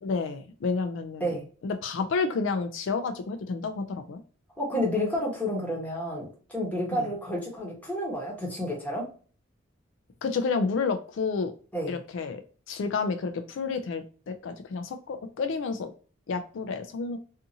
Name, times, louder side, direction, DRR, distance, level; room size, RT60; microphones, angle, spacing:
voice 1, 0.0-1.3 1.6-4.2 6.9-7.1 10.2-11.5 11.9-12.4 12.7-15.9 16.3-17.2, left 4 dB, 65° left, 7 dB, 0.3 m, -30 dB
voice 2, 4.6-9.1 11.7-12.0, left 1 dB, 10° left, -3 dB, 1.0 m, -30 dB
2.6 x 2.5 x 2.6 m, 0.40 s
head